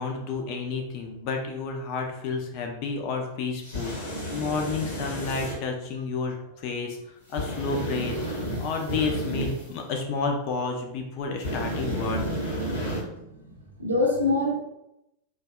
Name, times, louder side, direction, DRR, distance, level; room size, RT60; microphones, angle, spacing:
voice 1, 0.0-8.1 8.6-12.2, left 4 dB, 45° left, 2 dB, 0.4 m, -31 dB
sound 1, 3.6-5.6 7.3-9.7 11.4-13.0, equal, 60° left, 0.8 m, -31 dB
voice 2, 12.8-14.6, left 2 dB, 80° right, -1 dB, 0.6 m, -26 dB
2.6 x 2.2 x 2.2 m, 0.86 s
figure-of-eight pair, 90°, 0 cm